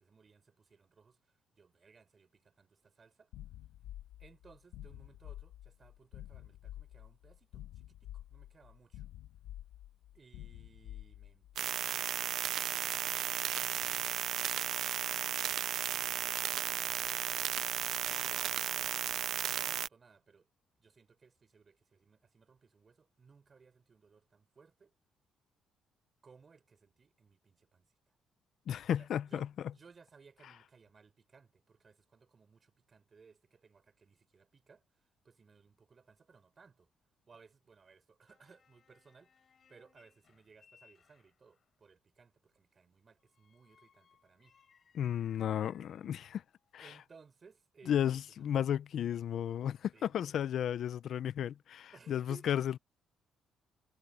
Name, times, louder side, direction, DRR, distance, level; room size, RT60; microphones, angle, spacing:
voice 1, 0.0-3.3 4.2-9.0 10.1-13.0 15.3-17.5 19.4-20.5 20.8-24.9 26.2-28.2 29.0-34.8 35.2-36.9 37.3-44.6 46.8-48.4 49.9-50.3 51.9-52.5, right 5 dB, 40° right, 4.9 m, -62 dB
sound 1, 3.3-11.6, left 13 dB, 85° left, 1.5 m, -49 dB
sound 2, 11.6-19.9, right 10 dB, 70° right, 0.6 m, -34 dB
voice 2, 28.7-29.5 44.9-46.4 46.7-46.9 47.9-52.8, left 10 dB, 65° left, 0.7 m, -33 dB
sound 3, 38.3-41.7 43.2-46.9, left 7 dB, 50° left, 6.6 m, -69 dB
cardioid pair, 85°, 0 cm